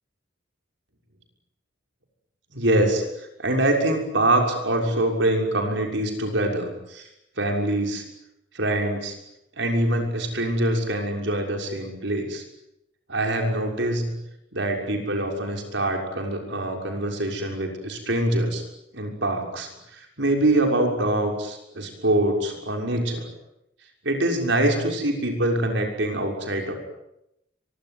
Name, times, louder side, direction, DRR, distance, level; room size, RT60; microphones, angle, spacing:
voice 1, 2.5-7.1 7.4-8.0 8.5-9.1 9.6-12.4 13.1-14.1 14.5-18.6 18.9-23.3 24.0-26.7, right 1 dB, 65° right, 3 dB, 6.4 m, -24 dB
24.5 x 24.0 x 9.7 m, 0.84 s
head